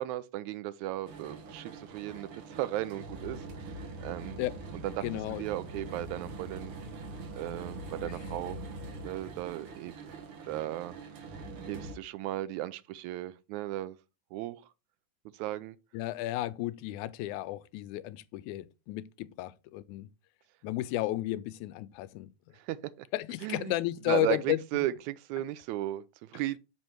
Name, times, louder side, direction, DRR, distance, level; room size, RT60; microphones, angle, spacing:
voice 1, 0.0-4.4 4.7-5.1 5.4-6.7 7.4-8.6 9.0-10.2 10.5-11.0 11.7-14.0 14.3-14.6 15.3-15.8 22.5-23.1 23.4-23.8 24.1-26.6, right 15 dB, 80° right, 1.9 m, -36 dB
sound 1, 1.1-12.0, right 2 dB, 55° right, 1.9 m, -43 dB
voice 2, 5.0-5.4 15.9-20.1 20.6-22.3 23.1-24.6, left 15 dB, 85° left, 1.9 m, -33 dB
6.3 x 5.2 x 4.4 m
omnidirectional pair, 3.5 m